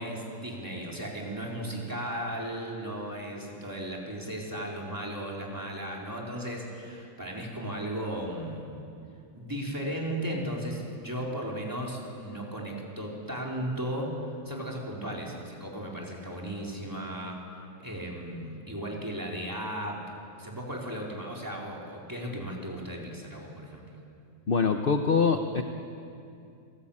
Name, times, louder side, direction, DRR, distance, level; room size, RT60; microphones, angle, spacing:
voice 1, 0.0-8.7 9.3-14.2 14.4-17.4 17.8-20.0 20.4-23.8, right 1 dB, 10° right, -3 dB, 4.1 m, -36 dB
voice 2, 24.5-25.6, left 5 dB, 40° left, 6 dB, 0.8 m, -24 dB
28.0 x 17.5 x 8.8 m, 2.6 s
omnidirectional pair, 2.1 m